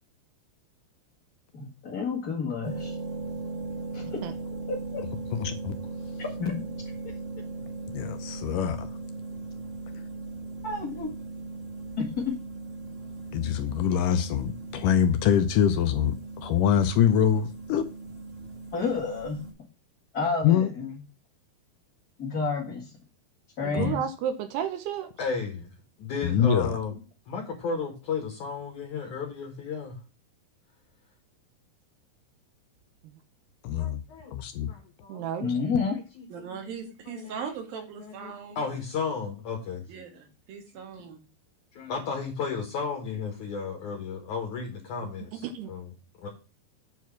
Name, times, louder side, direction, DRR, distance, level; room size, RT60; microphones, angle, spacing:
voice 1, 1.5-2.9 3.9-4.2 4.7-5.0 6.2-6.6 10.6-11.1 12.0-12.1 18.7-19.4 20.1-20.9 22.2-22.9 23.6-24.0 35.4-36.0, left 4 dB, 40° left, -4 dB, 1.4 m, -30 dB
sound 1, 2.6-19.5, right 3 dB, 25° right, 1.3 m, -38 dB
voice 2, 5.4-5.8 7.9-8.9 13.3-17.8 20.4-20.7 23.8-23.9 26.2-26.8 33.6-34.0 34.3-34.7 35.5-35.6, left 8 dB, 80° left, 9 dB, 1.9 m, -24 dB
voice 3, 23.7-25.1 35.1-35.5 45.4-45.7, right 8 dB, 85° right, 8 dB, 2.9 m, -31 dB
voice 4, 25.2-25.7 26.0-27.0 27.3-30.0 33.8-34.3 34.7-35.3 35.8-36.4 36.8-37.4 37.7-39.8 41.8-46.3, left 5 dB, 60° left, 1 dB, 2.6 m, -34 dB
voice 5, 36.3-38.6 39.9-41.2, right 6 dB, 65° right, 4 dB, 3.5 m, -39 dB
8.2 x 4.7 x 5.8 m, 0.32 s
omnidirectional pair, 4.6 m